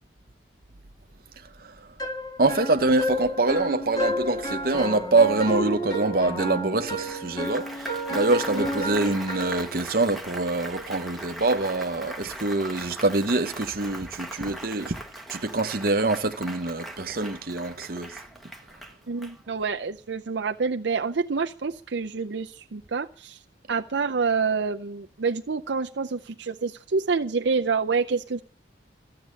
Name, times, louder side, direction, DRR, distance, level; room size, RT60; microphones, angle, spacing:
sound 1, 2.0-9.7, equal, 20° left, 1.8 m, -31 dB
voice 1, 2.4-15.0 15.3-18.2, right 2 dB, 50° right, 1.0 m, -25 dB
Applause, 7.0-19.8, right 1 dB, ahead, 1.2 m, -40 dB
voice 2, 19.1-23.4 23.7-28.4, right 5 dB, 70° right, 0.6 m, -27 dB
14.5 x 7.7 x 9.6 m
head